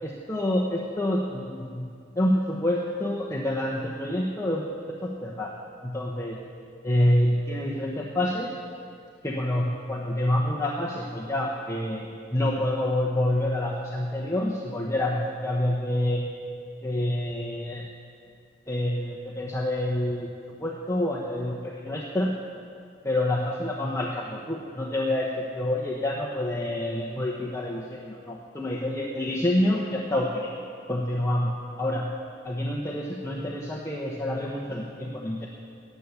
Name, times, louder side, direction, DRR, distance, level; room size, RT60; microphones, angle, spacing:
voice 1, 0.0-1.9 2.2-4.6 5.0-5.5 5.8-6.4 6.8-8.5 9.2-16.3 16.8-17.9 18.7-20.3 20.6-22.3 23.0-30.5 30.9-31.5 31.8-32.1 32.4-35.5, left 1 dB, 15° left, -3 dB, 0.9 m, -27 dB
15.0 x 9.4 x 7.1 m, 2.4 s
head